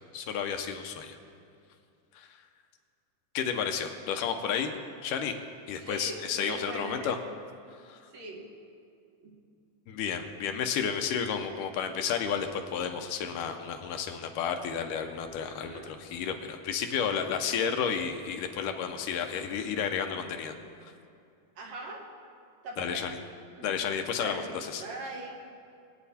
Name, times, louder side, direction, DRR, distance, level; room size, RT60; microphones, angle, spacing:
voice 1, 0.1-1.2 2.1-2.4 3.3-4.7 5.0-5.4 5.7-7.2 7.8-8.1 9.9-20.9 22.8-23.2 23.6-24.8, left 7 dB, 80° left, 5 dB, 2.3 m, -32 dB
voice 2, 5.8-7.2 8.1-8.5 9.2-9.4 15.5-15.9 21.6-22.0 22.6-23.2 23.6-23.7 24.2-24.5 24.8-25.3, right 2 dB, 60° right, 0 dB, 2.4 m, -41 dB
22.5 x 9.0 x 4.2 m, 2.4 s
omnidirectional pair, 3.8 m